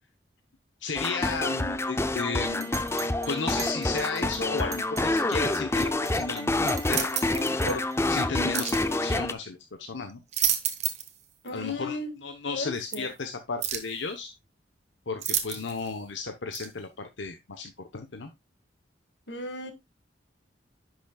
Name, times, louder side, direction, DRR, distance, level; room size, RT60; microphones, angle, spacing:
voice 1, 0.8-2.8 3.3-7.8 8.1-10.2 11.5-14.3 15.1-18.3, left 4 dB, 90° left, 0.9 m, -34 dB
sound 1, 1.0-9.3, left 2 dB, 15° left, 0.5 m, -27 dB
Chink clink, 2.4-5.1 5.3-8.0, right 6 dB, 20° right, 1.3 m, -42 dB
sound 2, 6.8-7.5 8.5-8.9 10.1-11.2 11.5-11.6 12.9-13.0 13.6-14.0 15.2-15.9 16.5-16.7, right 9 dB, 40° right, 1.1 m, -30 dB
voice 2, 11.4-12.1 12.5-13.1 19.3-19.7, left 2 dB, 70° left, 1.6 m, -35 dB
10.0 x 6.2 x 2.3 m
head